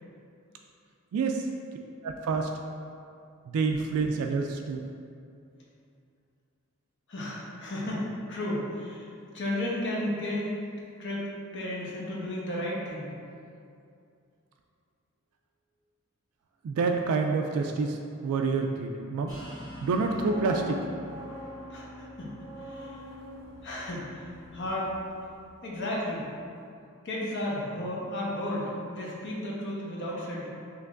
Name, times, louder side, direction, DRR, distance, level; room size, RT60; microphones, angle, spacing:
voice 1, 1.1-1.5 2.0-2.5 3.5-4.8 16.6-19.3 19.8-20.9, right 4 dB, 80° right, 3 dB, 0.3 m, -28 dB
voice 2, 7.1-9.1 9.3-10.5 11.0-13.1 21.7-23.0 23.6-24.9 25.6-26.3 27.0-30.5, left 1 dB, 60° left, -4 dB, 0.9 m, -33 dB
sound 1, 19.3-24.7, equal, 15° left, 1.4 m, -47 dB
sound 2, 19.9-25.8 26.1-26.3, equal, 85° left, 1.2 m, -44 dB
5.7 x 3.1 x 2.5 m, 2.5 s
head